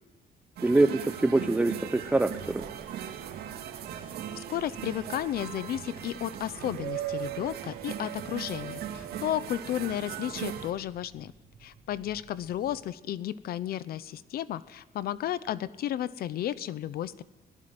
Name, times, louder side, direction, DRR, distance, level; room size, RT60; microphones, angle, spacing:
voice 1, 0.6-2.7, right 2 dB, 10° right, 9 dB, 0.7 m, -24 dB
sound 1, 0.6-10.7, right 10 dB, 80° right, 2.2 m, -38 dB
sound 2, 1.8-12.8, right 4 dB, 30° right, 7.8 m, -55 dB
voice 2, 4.3-11.3 11.6-17.2, left 12 dB, 70° left, 17 dB, 0.9 m, -33 dB
23.0 x 17.5 x 7.9 m, 1.1 s
cardioid pair, 150°, 16 cm